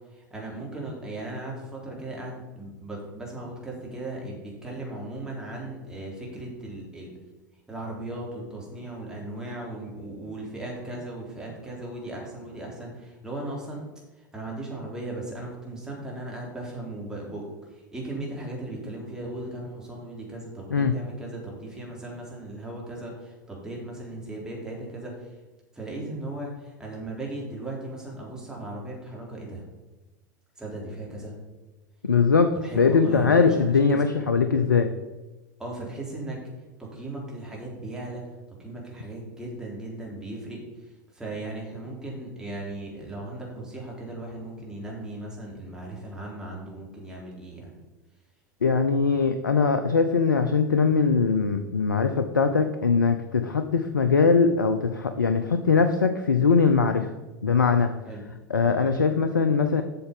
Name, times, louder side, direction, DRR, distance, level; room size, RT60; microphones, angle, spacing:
voice 1, 0.1-7.1 7.7-13.8 14.2-25.3 25.7-29.6 30.6-31.3 32.5-34.1 35.6-36.4 36.8-47.7 58.1-58.3, right 2 dB, 5° right, -3 dB, 3.4 m, -37 dB
voice 2, 32.0-34.9 48.6-57.1 57.4-57.9 58.5-59.8, left 5 dB, 85° left, 8 dB, 0.6 m, -21 dB
7.9 x 6.6 x 5.4 m, 1.1 s
figure-of-eight pair, 85°, 10 cm